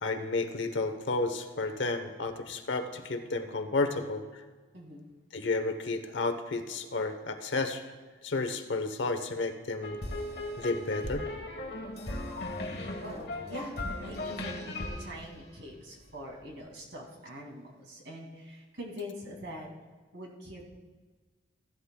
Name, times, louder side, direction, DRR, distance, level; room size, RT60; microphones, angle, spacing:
voice 1, 0.0-4.2 5.3-7.8 8.2-10.0 10.6-11.3, left 3 dB, 75° left, 8 dB, 0.9 m, -32 dB
voice 2, 4.7-5.1 13.0-19.7 20.1-20.6, equal, 70° right, 0 dB, 2.3 m, -44 dB
sound 1, 9.8-16.1, left 1 dB, 55° left, 1.3 m, -37 dB
15.5 x 11.5 x 2.3 m, 1.3 s
head